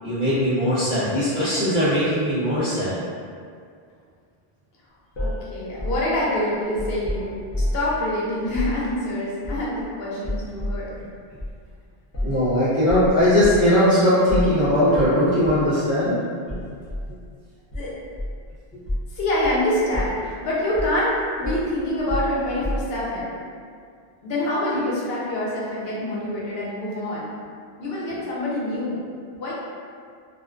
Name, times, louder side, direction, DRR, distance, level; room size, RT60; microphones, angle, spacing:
voice 1, 0.0-3.0 12.2-16.1 16.5-16.6 17.1-17.2 18.7-18.8 24.7-24.8, equal, 20° right, -15 dB, 1.0 m, -20 dB
sound 1, 5.1-7.9 8.5-8.8 9.4-9.9 10.2-10.8 11.4-11.6 12.1-12.5 12.9-13.7 14.3-14.6 14.9-15.2 15.4-15.7 16.5-17.1 17.7-18.5 18.8-19.1 19.4-19.6 19.9-20.3 20.7-21.0 21.4-23.1, left 1 dB, 40° left, 0.4 m, -29 dB
voice 2, 5.2-11.0 17.7-18.1 19.1-23.4 24.2-27.3 27.8-29.1 29.3-29.5, left 1 dB, 75° left, -6 dB, 0.9 m, -26 dB
2.4 x 2.1 x 2.4 m, 2.2 s
omnidirectional pair, 1.0 m